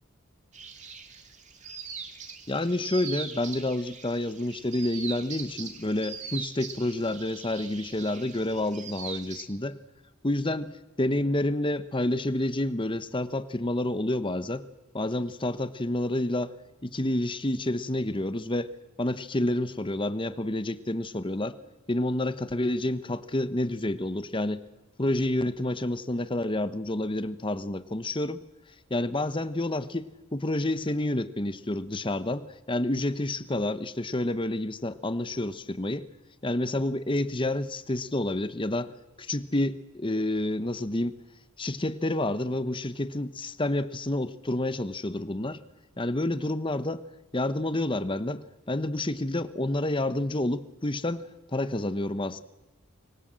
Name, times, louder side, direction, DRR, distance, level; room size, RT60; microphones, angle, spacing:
sound 1, 0.5-9.5, right 6 dB, 35° right, 2.4 m, -41 dB
voice 1, 2.5-9.8 10.2-14.7 14.9-16.5 16.8-18.7 19.0-21.5 21.9-24.6 25.0-28.4 28.9-36.1 36.4-38.9 39.2-41.1 41.6-45.6 46.0-47.0 47.3-52.4, left 1 dB, 25° left, 13 dB, 1.0 m, -29 dB
25.0 x 21.5 x 7.6 m, 1.0 s
head